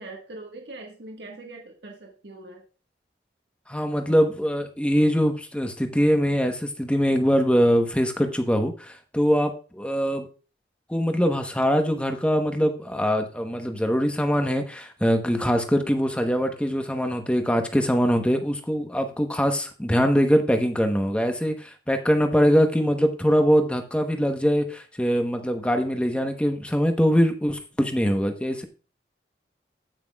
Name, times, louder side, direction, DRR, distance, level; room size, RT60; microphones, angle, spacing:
voice 1, 0.0-2.6, right 2 dB, 75° right, 1 dB, 1.5 m, -42 dB
voice 2, 3.7-10.3 10.9-28.6, equal, 5° left, 6 dB, 0.9 m, -23 dB
16.0 x 5.9 x 2.3 m, 0.36 s
head